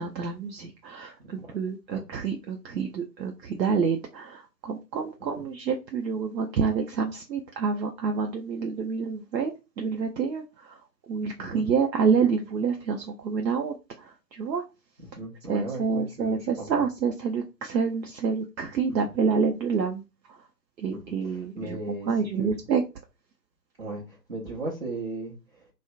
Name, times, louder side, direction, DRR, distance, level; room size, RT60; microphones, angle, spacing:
voice 1, 0.0-10.8 11.1-14.6 15.5-20.0 20.3-20.4 20.8-21.8 22.1-22.8, right 5 dB, 80° right, 0.6 m, -28 dB
voice 2, 15.1-16.8 20.9-22.1 22.4-22.5 23.8-25.7, right 2 dB, 35° right, 0.7 m, -37 dB
2.5 x 2.1 x 2.4 m
figure-of-eight pair, 145°, 50 cm